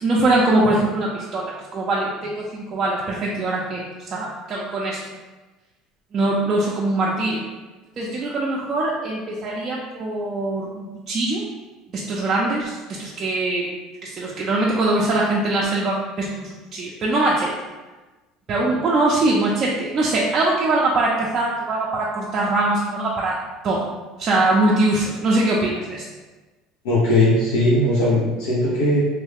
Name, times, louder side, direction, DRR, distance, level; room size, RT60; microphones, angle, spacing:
voice 1, 0.0-3.8 4.1-5.0 6.1-7.4 8.0-11.4 11.9-13.7 14.0-17.5 18.5-23.4 23.6-23.8 24.2-26.0, right 2 dB, 35° right, -5 dB, 0.5 m, -22 dB
voice 2, 26.8-29.0, left 1 dB, 90° left, -8 dB, 0.7 m, -18 dB
3.1 x 2.3 x 3.3 m, 1.2 s
supercardioid pair, 120°, 0 cm